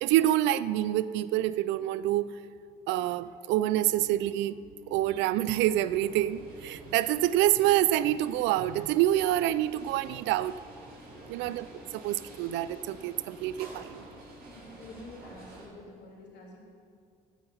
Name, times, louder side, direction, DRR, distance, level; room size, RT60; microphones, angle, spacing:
voice 1, 0.0-2.4 2.9-4.6 4.9-10.5 11.3-11.7 11.9-14.0, right 13 dB, 75° right, 17 dB, 0.4 m, -27 dB
sound 1, 3.6-14.8, left 2 dB, 15° right, 2.2 m, -55 dB
sound 2, 5.4-15.7, right 2 dB, 55° right, 3.6 m, -50 dB
voice 2, 14.5-16.6, left 2 dB, 65° left, -3 dB, 3.1 m, -48 dB
12.5 x 5.7 x 8.2 m, 2.3 s
supercardioid pair, 60°, 19 cm